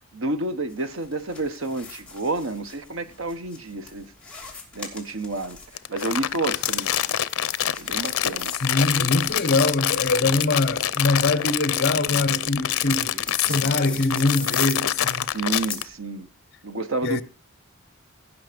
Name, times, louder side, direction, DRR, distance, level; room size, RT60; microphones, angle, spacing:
voice 1, 0.1-4.1 4.7-5.6 5.9-7.2 7.8-8.5 15.3-16.3 16.6-17.2, right 2 dB, 75° right, 1.1 m, -29 dB
sound 1, 0.7-15.9, left 4 dB, 5° left, 2.7 m, -41 dB
Crumpling crinkling, 5.7-15.8, left 11 dB, 90° left, 0.6 m, -26 dB
voice 2, 8.6-15.3 17.0-17.2, left 2 dB, 50° left, 0.9 m, -23 dB
Human voice, 8.8-14.8, right 1 dB, 50° right, 2.1 m, -45 dB
17.0 x 5.7 x 5.1 m
head